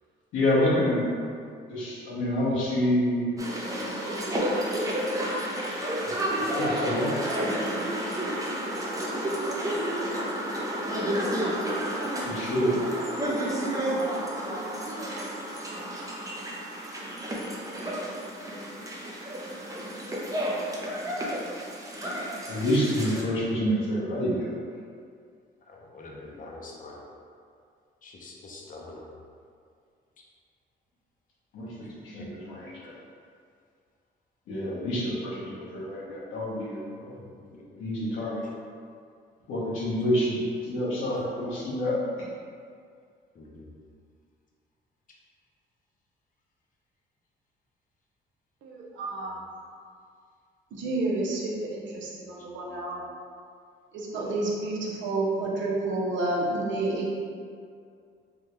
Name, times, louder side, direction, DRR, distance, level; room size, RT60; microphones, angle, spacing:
voice 1, 0.3-1.1 1.7-3.3 6.4-7.1 12.2-12.7 22.5-24.6 31.5-31.7 32.0-32.9 34.5-36.8 37.8-38.4 39.5-42.0, left 1 dB, 85° left, -8 dB, 1.1 m, -27 dB
sound 1, 3.4-23.2, right 1 dB, 15° right, 0.6 m, -31 dB
voice 2, 25.6-27.0 28.0-29.1 31.8-32.3 36.9-37.7 43.3-43.7 52.4-52.5, left 2 dB, 40° left, -2 dB, 0.7 m, -46 dB
voice 3, 48.6-49.4 50.7-53.1 53.9-57.1, right 2 dB, 70° right, -3 dB, 0.7 m, -30 dB
3.5 x 2.2 x 3.0 m, 2.2 s
cardioid pair, 90°, 20 cm